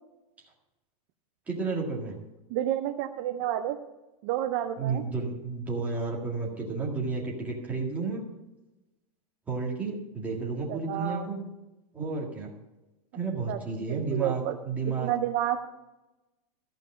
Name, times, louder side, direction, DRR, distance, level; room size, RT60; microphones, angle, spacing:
voice 1, 1.5-2.1 4.8-8.2 9.5-11.4 11.9-12.5 13.1-15.1, right 4 dB, 10° right, -3 dB, 1.8 m, -32 dB
voice 2, 2.5-3.8 4.2-5.0 10.7-11.3 13.5-14.6 15.0-15.6, right 12 dB, 25° right, 7 dB, 0.4 m, -30 dB
14.5 x 5.3 x 8.5 m, 1.0 s
supercardioid pair, 180°, 20 cm